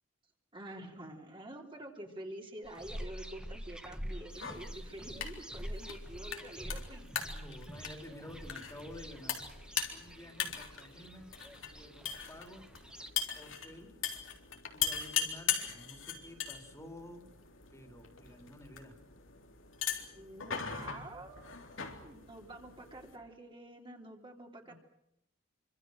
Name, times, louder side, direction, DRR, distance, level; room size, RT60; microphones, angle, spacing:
voice 1, 0.5-7.1 20.1-21.5 21.8-24.7, right 1 dB, 25° right, 1 dB, 3.4 m, -48 dB
sound 1, 2.7-13.1, equal, 5° right, 1.6 m, -46 dB
sound 2, 4.3-23.2, left 8 dB, 85° left, 3.7 m, -40 dB
voice 2, 7.3-9.4 9.9-11.3 11.7-12.7 13.3-14.0 14.7-17.3 17.7-19.0 24.6-24.7, left 1 dB, 15° left, 4 dB, 3.4 m, -51 dB
27.0 x 25.5 x 6.4 m, 0.79 s
head